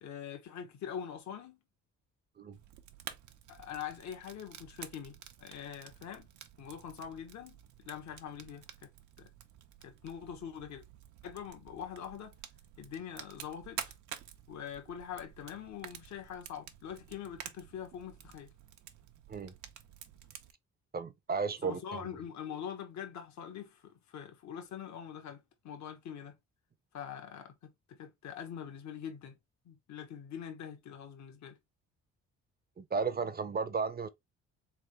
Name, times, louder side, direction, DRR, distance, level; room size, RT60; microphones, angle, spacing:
voice 1, 0.0-1.6 3.5-6.3 6.6-8.9 9.2-9.3 9.8-10.8 11.2-12.4 12.8-13.8 14.5-18.5 21.6-26.4 26.9-29.3 29.6-31.6, left 8 dB, 65° left, 1.3 m, -44 dB
Fire, 2.5-20.5, right 10 dB, 75° right, 0.8 m, -50 dB
voice 2, 20.9-22.1 32.8-34.1, right 5 dB, 30° right, 0.7 m, -34 dB
3.7 x 3.7 x 3.1 m
cardioid pair, 90°, 30 cm